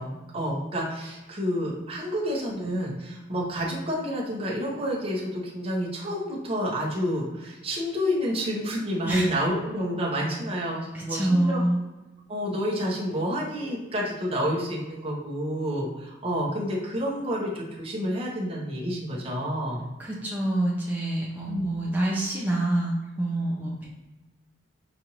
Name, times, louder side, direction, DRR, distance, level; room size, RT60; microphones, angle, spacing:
voice 1, 0.0-11.6 12.3-19.9 21.5-21.7, equal, 30° right, -4 dB, 0.9 m, -29 dB
voice 2, 11.1-11.8 20.0-23.9, right 1 dB, 10° right, -5 dB, 0.6 m, -26 dB
5.0 x 2.6 x 3.0 m, 1.1 s
head